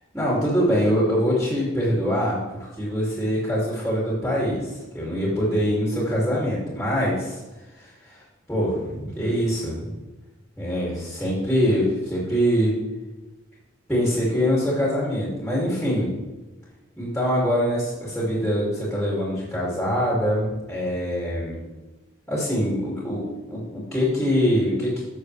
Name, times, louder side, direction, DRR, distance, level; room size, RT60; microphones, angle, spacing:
voice 1, 0.1-7.4 7.8-9.9 10.6-12.7 13.9-16.2 17.0-21.6 22.3-25.0, equal, 5° left, -6 dB, 2.5 m, -24 dB
14.5 x 6.6 x 3.3 m, 1.1 s
head